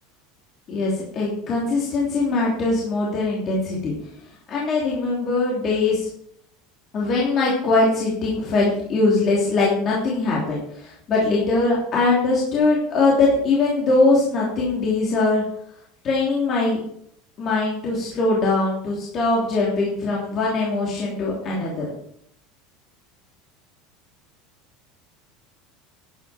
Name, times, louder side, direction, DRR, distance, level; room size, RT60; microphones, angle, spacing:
voice 1, 0.7-3.9 4.5-6.1 6.9-15.4 16.0-16.8 17.4-21.9, left 3 dB, 25° left, -4 dB, 3.2 m, -21 dB
13.5 x 10.5 x 4.4 m, 0.69 s
cardioid pair, 175°, 0 cm